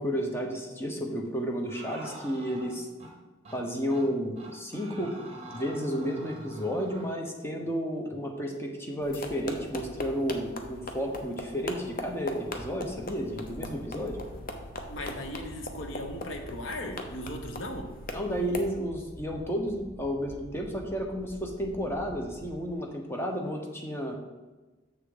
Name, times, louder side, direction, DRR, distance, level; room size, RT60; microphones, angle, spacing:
voice 1, 0.0-2.9 3.5-5.2 5.5-14.2 18.1-24.2, equal, 15° left, 1 dB, 1.0 m, -32 dB
sound 1, 1.7-3.1 3.5-3.6 3.9-4.1 4.4-7.1, right 2 dB, 35° right, 1.1 m, -45 dB
sound 2, 9.0-18.7, left 2 dB, 50° left, 0.8 m, -40 dB
sound 3, 12.4-22.6, equal, 30° left, 1.4 m, -48 dB
voice 2, 14.9-17.9, left 1 dB, 85° left, 4 dB, 1.1 m, -37 dB
7.0 x 6.6 x 3.9 m, 1.2 s
head